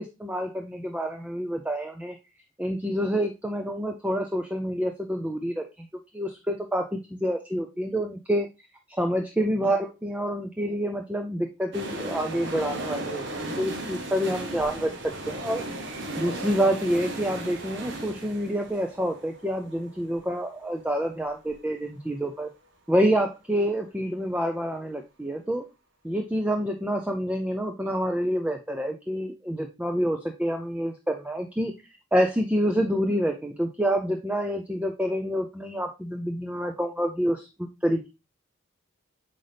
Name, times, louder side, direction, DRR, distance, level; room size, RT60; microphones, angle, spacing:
voice 1, 0.0-2.2 2.6-5.9 6.1-8.5 8.9-15.6 16.2-22.5 22.9-25.6 26.0-31.7 32.1-38.1, equal, 5° right, 4 dB, 0.4 m, -27 dB
sound 1, 11.7-21.5 21.8-21.9, right 1 dB, 55° right, 1.3 m, -36 dB
7.8 x 3.9 x 3.3 m, 0.27 s
head